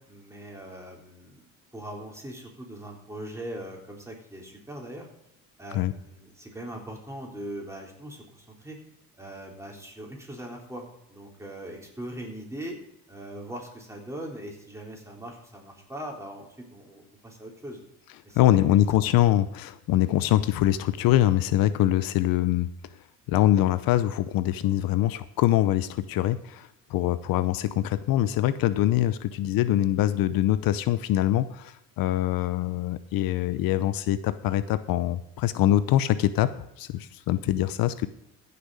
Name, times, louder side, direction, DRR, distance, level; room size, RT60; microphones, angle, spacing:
voice 1, 0.0-1.4 1.7-5.1 5.6-8.8 9.2-10.8 11.1-12.8 13.1-17.8 18.2-19.1, right 1 dB, 10° right, 0 dB, 3.9 m, -40 dB
voice 2, 18.3-22.7 23.3-38.1, left 13 dB, 75° left, 13 dB, 0.8 m, -24 dB
15.0 x 6.9 x 5.0 m, 0.80 s
cardioid pair, 105°, 35 cm